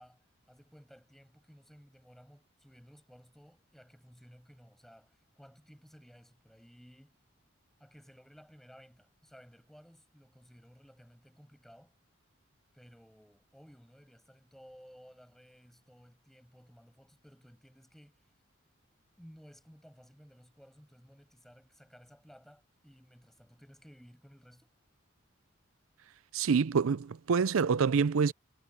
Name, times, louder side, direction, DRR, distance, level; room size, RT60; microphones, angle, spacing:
voice 1, 0.0-7.2 7.8-11.9 12.7-18.4 19.2-24.7, equal, ahead, 6.1 m, -57 dB
voice 2, 26.3-28.3, right 5 dB, 90° right, 0.5 m, -26 dB
head